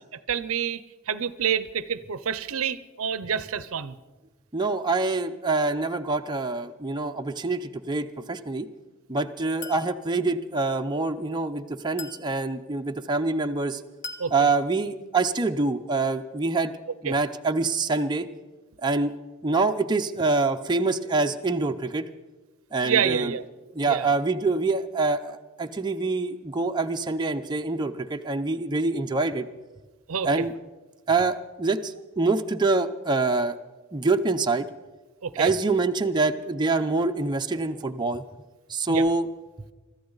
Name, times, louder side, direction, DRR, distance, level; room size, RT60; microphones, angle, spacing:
voice 1, 0.3-0.8 1.1-4.0 14.2-14.3 17.1-17.2 22.8-23.4 23.9-24.1 30.1-30.4 35.2-35.5 38.9-39.0, right 7 dB, 70° right, 15 dB, 0.6 m, -27 dB
voice 2, 4.5-8.7 9.1-13.8 14.3-16.7 17.0-18.3 18.8-19.1 19.4-22.1 22.7-23.3 23.7-29.4 30.2-30.5 31.1-33.6 33.9-34.7 35.4-38.2 38.7-39.3, right 3 dB, 20° right, 5 dB, 0.6 m, -25 dB
Chink clink, 9.6-10.0 12.0-12.3 14.0-14.3, left 3 dB, 55° left, 1.7 m, -39 dB
23.5 x 13.5 x 4.0 m, 1.2 s
head